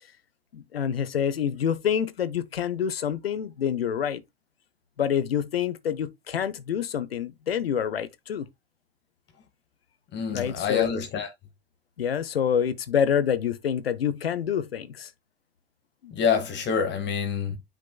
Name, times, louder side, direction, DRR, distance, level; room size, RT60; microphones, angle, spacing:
voice 1, 0.5-4.2 5.0-8.5 10.3-10.9 12.0-15.1 16.0-16.1, left 8 dB, 75° left, 0.8 m, -27 dB
voice 2, 10.1-11.3 16.1-17.6, left 7 dB, 35° left, 1.9 m, -26 dB
8.9 x 5.1 x 2.3 m
figure-of-eight pair, 80°, 30 cm